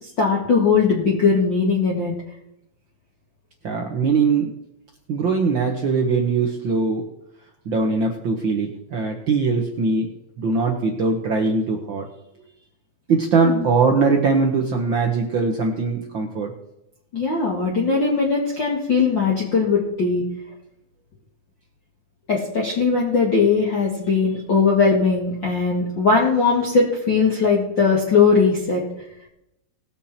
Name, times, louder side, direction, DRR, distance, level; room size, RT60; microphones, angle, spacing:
voice 1, 0.0-2.1 13.5-13.7 17.1-20.2 22.3-28.8, left 5 dB, 40° left, -3 dB, 2.1 m, -19 dB
voice 2, 3.6-4.5 5.1-7.0 7.6-10.1 10.4-12.1 13.1-16.5, right 4 dB, 80° right, 1 dB, 1.0 m, -21 dB
20.0 x 7.1 x 4.3 m, 0.82 s
omnidirectional pair, 4.1 m